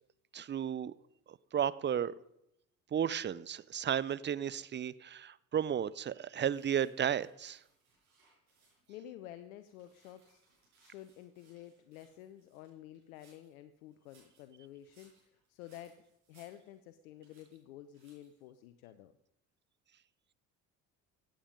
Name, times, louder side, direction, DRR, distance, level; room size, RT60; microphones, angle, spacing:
voice 1, 0.3-0.9 1.3-2.1 2.9-7.6, right 9 dB, 25° right, 19 dB, 0.6 m, -34 dB
sound 1, 6.5-9.0 9.4-13.5 13.9-16.9 17.2-17.6 17.9-18.4, right 3 dB, 85° right, 6.1 m, -69 dB
voice 2, 8.9-10.4 10.8-19.1, left 12 dB, 75° left, 11 dB, 0.8 m, -51 dB
15.5 x 8.9 x 5.3 m, 0.83 s
hypercardioid pair, 50°, 43 cm